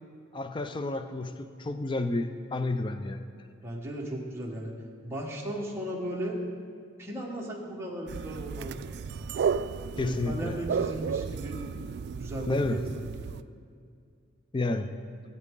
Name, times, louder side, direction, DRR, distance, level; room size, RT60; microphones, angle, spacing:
voice 1, 0.3-3.2 10.0-10.6 12.5-12.8 14.5-14.9, left 2 dB, 25° left, 9 dB, 0.4 m, -30 dB
voice 2, 3.6-4.7 5.0-6.4 7.0-9.6 9.9-11.6 12.1-13.3, right 1 dB, 15° right, -3 dB, 1.5 m, -36 dB
sound 1, 8.1-13.4, right 6 dB, 55° right, 0.3 m, -33 dB
17.5 x 8.5 x 3.7 m, 2.2 s
head